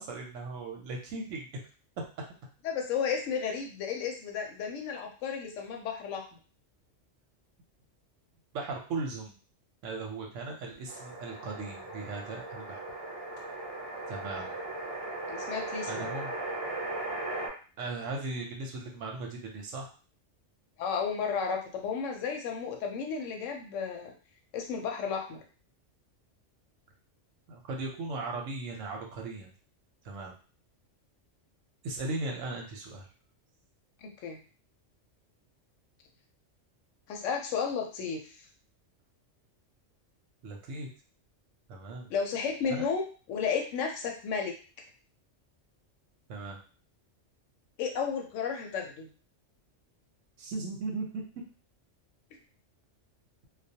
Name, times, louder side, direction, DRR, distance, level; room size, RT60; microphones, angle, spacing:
voice 1, 0.0-1.5 8.5-9.3 9.8-12.9 14.1-14.5 15.9-16.3 17.8-19.9 27.5-29.5 30.0-30.3 31.8-33.1 40.4-40.9 41.7-42.1 42.7-42.8 46.3-46.6 50.4-51.2, right 3 dB, 85° right, 1 dB, 1.0 m, -37 dB
voice 2, 2.6-6.3 14.2-14.4 15.3-16.1 20.8-24.1 24.5-25.4 34.0-34.4 37.1-38.2 42.1-43.0 43.3-44.5 47.8-49.1, left 6 dB, 80° left, 2 dB, 0.9 m, -33 dB
sound 1, 10.9-17.5, right 2 dB, 25° right, 0.6 m, -38 dB
2.3 x 2.2 x 2.7 m, 0.37 s
omnidirectional pair, 1.3 m